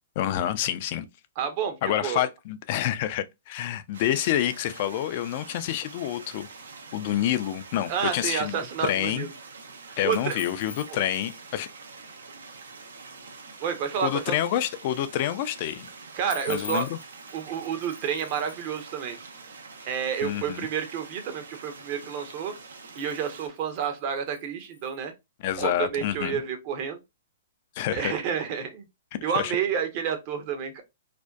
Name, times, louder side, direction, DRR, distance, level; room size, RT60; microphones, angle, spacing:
voice 1, 0.2-1.1 1.8-6.5 6.9-9.3 10.0-11.7 14.0-15.9 16.5-17.0 20.2-20.7 25.4-26.4 27.8-28.1 29.4-29.6, left 12 dB, 45° left, 0.3 m, -28 dB
voice 2, 1.4-1.7 2.0-2.2 7.9-9.3 9.9-10.4 10.9-11.0 13.6-14.4 16.2-16.9 17.3-19.2 19.9-22.5 22.9-25.1 25.6-27.0 27.9-28.8 29.2-30.8, right 7 dB, 45° right, 0.6 m, -30 dB
sound 1, 3.9-23.5, right 4 dB, 85° right, 0.6 m, -45 dB
sound 2, 10.1-11.4 16.3-18.9 22.7-25.1, left 6 dB, 85° left, 0.6 m, -45 dB
2.5 x 2.1 x 2.3 m
hypercardioid pair, 135°, 0 cm